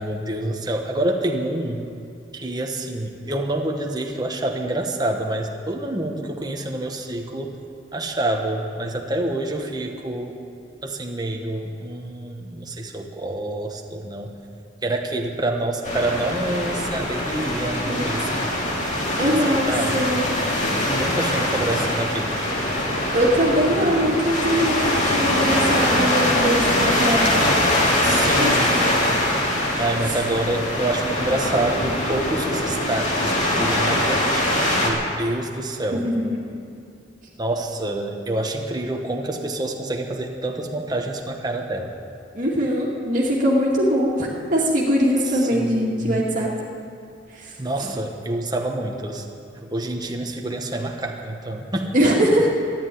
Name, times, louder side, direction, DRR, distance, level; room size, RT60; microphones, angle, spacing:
voice 1, 0.0-1.8 2.3-7.5 7.9-10.3 10.8-14.3 14.8-18.5 19.2-20.1 20.8-22.4 28.0-28.8 29.8-34.5 34.8-36.1 37.4-41.9 45.2-46.3 47.6-49.2 49.6-51.9, right 1 dB, 20° right, 2 dB, 1.3 m, -27 dB
sound 1, 15.8-34.9, left 1 dB, 40° left, 2.6 m, -22 dB
voice 2, 19.2-20.3 23.1-27.4 28.0-28.9 30.1-30.2 35.9-36.6 42.3-46.5 47.4-47.5 51.9-52.5, equal, 45° right, -4 dB, 2.3 m, -22 dB
13.5 x 10.5 x 9.3 m, 2.4 s
head